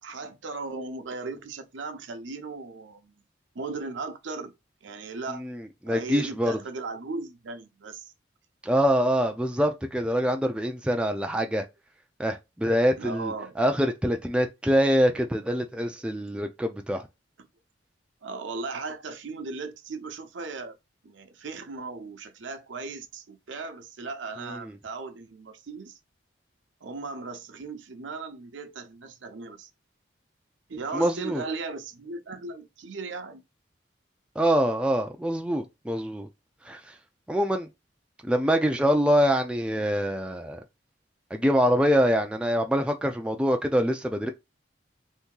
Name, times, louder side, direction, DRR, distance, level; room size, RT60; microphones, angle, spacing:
voice 1, 0.0-3.1 3.5-4.5 4.8-5.5 5.9-8.1 9.6-9.7 13.0-13.6 18.2-20.8 21.0-26.0 26.8-29.7 30.7-33.4, right 3 dB, 80° right, 0.6 m, -37 dB
voice 2, 5.8-6.6 8.6-11.6 12.2-17.0 24.4-24.6 30.9-31.4 34.4-36.3 36.7-36.8 37.3-37.7 38.2-40.6 41.3-44.3, equal, 5° right, 0.3 m, -25 dB
2.7 x 2.7 x 3.7 m
head